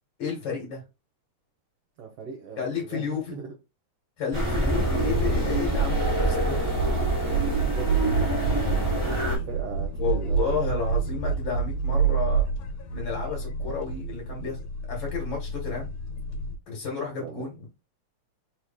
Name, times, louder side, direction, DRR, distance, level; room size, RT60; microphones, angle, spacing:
voice 1, 0.2-0.8 2.6-3.4 4.2-6.6 10.0-12.4 12.9-14.6 14.9-15.9 16.7-17.6, left 6 dB, 45° left, -2 dB, 1.9 m, -31 dB
voice 2, 2.0-3.5 7.2-10.6 17.2-17.5, right 6 dB, 65° right, 1 dB, 1.7 m, -40 dB
sound 1, 4.3-9.4, right 1 dB, 15° right, 1.2 m, -26 dB
sound 2, 4.6-16.6, right 5 dB, 70° left, 1.7 m, -29 dB
4.4 x 3.1 x 3.5 m, 0.26 s
omnidirectional pair, 3.4 m